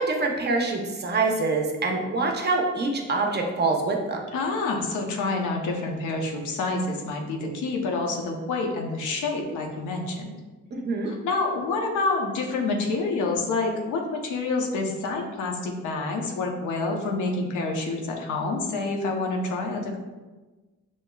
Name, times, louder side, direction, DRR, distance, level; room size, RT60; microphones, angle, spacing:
voice 1, 0.0-4.2 10.7-11.1, right 3 dB, 35° right, 1 dB, 0.8 m, -25 dB
voice 2, 4.3-10.3 11.0-20.0, left 3 dB, 80° left, 1 dB, 0.8 m, -28 dB
6.3 x 3.0 x 2.3 m, 1.2 s
cardioid pair, 90°, 30 cm